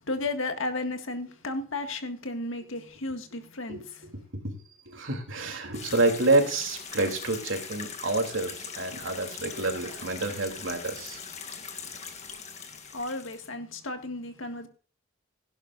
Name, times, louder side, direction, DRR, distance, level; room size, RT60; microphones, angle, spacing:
voice 1, 0.0-4.1 12.7-14.7, left 2 dB, 80° left, 1.9 m, -34 dB
voice 2, 4.9-11.2, right 2 dB, 75° right, 3.0 m, -28 dB
sound 1, 5.7-13.5, left 6 dB, 35° left, 1.8 m, -41 dB
17.5 x 11.0 x 2.5 m
head